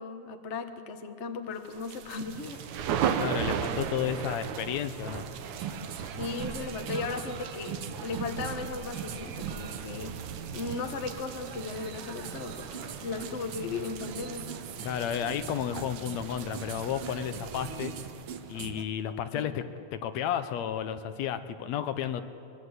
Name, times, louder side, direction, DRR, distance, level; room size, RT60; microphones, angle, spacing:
voice 1, 0.0-2.6 6.2-10.1 10.5-14.5 19.3-19.5, left 4 dB, 40° left, 6 dB, 1.0 m, -36 dB
sound 1, 1.7-18.7, right 8 dB, 85° right, 2.5 m, -37 dB
sound 2, 2.3-17.8, right 3 dB, 35° right, 0.8 m, -50 dB
voice 2, 3.2-5.3 14.8-17.9 18.5-19.6 19.9-22.2, left 9 dB, 75° left, 10 dB, 2.0 m, -32 dB
sound 3, 5.4-18.8, right 8 dB, 65° right, 1.7 m, -42 dB
23.5 x 23.0 x 8.1 m, 2.8 s
omnidirectional pair, 3.3 m